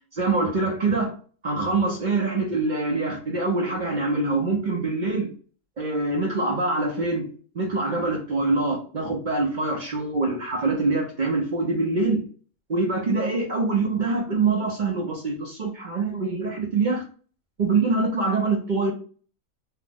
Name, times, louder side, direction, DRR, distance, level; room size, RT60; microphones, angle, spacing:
voice 1, 0.1-1.1 1.4-5.3 5.8-7.3 7.5-12.2 12.7-17.0 17.6-18.9, right 3 dB, 60° right, 0.5 m, -24 dB
2.9 x 2.0 x 3.4 m
omnidirectional pair, 1.6 m